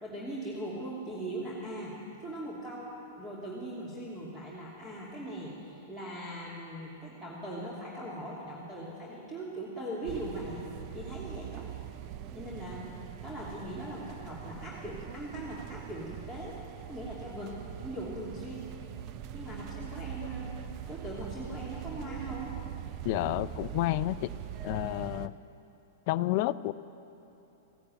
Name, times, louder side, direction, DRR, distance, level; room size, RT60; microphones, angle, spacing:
voice 1, 0.0-1.9 2.2-2.9 3.2-10.6 10.9-11.7 12.3-13.0 13.2-16.6 16.9-17.5 17.8-18.6 19.3-20.5 20.9-22.6, right 1 dB, 10° right, -7 dB, 2.7 m, -40 dB
sound 1, 10.1-25.3, right 10 dB, 45° right, 0.5 m, -42 dB
voice 2, 23.0-24.3 24.6-25.3 26.1-26.7, left 17 dB, 55° left, 16 dB, 0.4 m, -30 dB
15.5 x 9.6 x 9.1 m, 2.9 s
hypercardioid pair, 120°, 0 cm